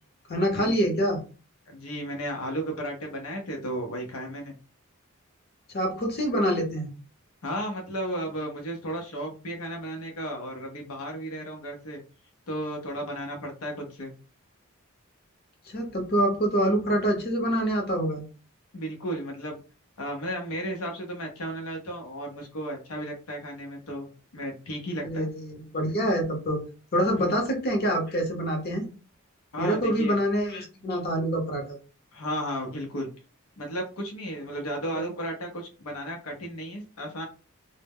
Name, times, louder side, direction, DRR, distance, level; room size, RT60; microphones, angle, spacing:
voice 1, 0.3-1.2 5.7-6.9 15.7-18.2 25.0-26.6 26.9-28.9 29.6-31.8 34.9-35.0, equal, 45° left, 1 dB, 0.7 m, -26 dB
voice 2, 1.7-4.5 7.4-12.0 12.5-14.1 18.7-19.6 20.0-25.3 27.2-27.3 29.5-30.2 32.1-33.1 33.6-37.2, equal, 80° left, 2 dB, 0.6 m, -34 dB
2.0 x 2.0 x 3.4 m, 0.35 s
head